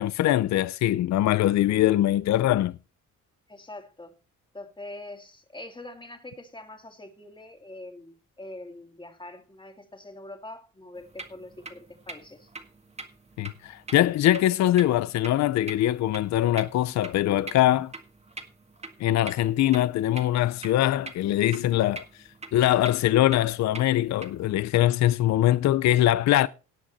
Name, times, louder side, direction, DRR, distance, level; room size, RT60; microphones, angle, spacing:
voice 1, 0.0-2.8 13.4-17.9 19.0-22.0 22.5-26.5, left 13 dB, 65° left, 0.5 m, -22 dB
voice 2, 3.5-4.1 4.5-12.5, left 2 dB, 15° left, 2.4 m, -43 dB
sound 1, 11.0-24.5, right 3 dB, 20° right, 1.8 m, -45 dB
18.0 x 6.3 x 4.1 m
cardioid pair, 90°, 30 cm